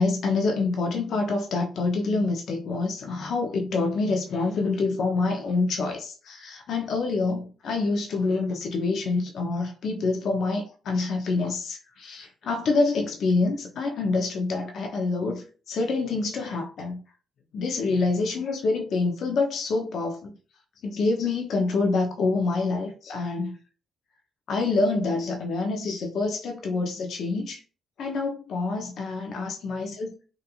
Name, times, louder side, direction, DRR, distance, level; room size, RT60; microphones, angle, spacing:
voice 1, 0.0-17.0 17.5-20.4 20.8-23.6 24.5-27.6 28.0-30.2, left 3 dB, 65° left, 0.5 m, -26 dB
2.8 x 2.4 x 2.3 m
cardioid pair, 90°, 0 cm